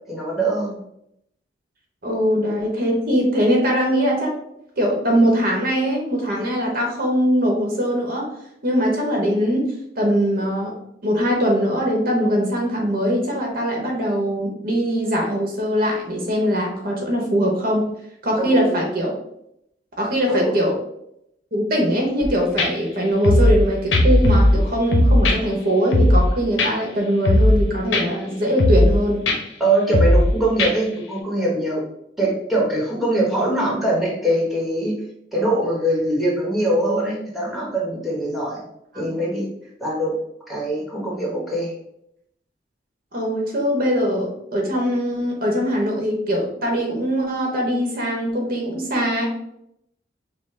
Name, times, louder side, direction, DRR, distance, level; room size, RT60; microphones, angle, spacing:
voice 1, 0.1-0.8 18.4-18.8 20.3-20.5 29.6-31.8 32.2-34.9 35.3-38.6 38.9-39.5 39.8-40.1 40.5-41.7, right 1 dB, ahead, -4 dB, 1.2 m, -22 dB
voice 2, 2.0-4.3 4.8-8.3 8.6-9.7 10.0-10.7 11.0-17.8 18.2-19.1 20.0-20.7 21.5-29.2 43.1-49.3, equal, 55° right, 0 dB, 1.0 m, -21 dB
sound 1, 22.2-22.3 22.6-22.7 23.2-23.6 23.9-24.6 24.9-25.4 25.9-26.3 26.6-26.7 27.2-27.6 27.9-28.0 28.6-29.0 29.3-29.4 29.9-30.3 30.6-30.7, left 1 dB, 85° left, 0.8 m, -16 dB
5.4 x 2.2 x 3.3 m, 0.77 s
head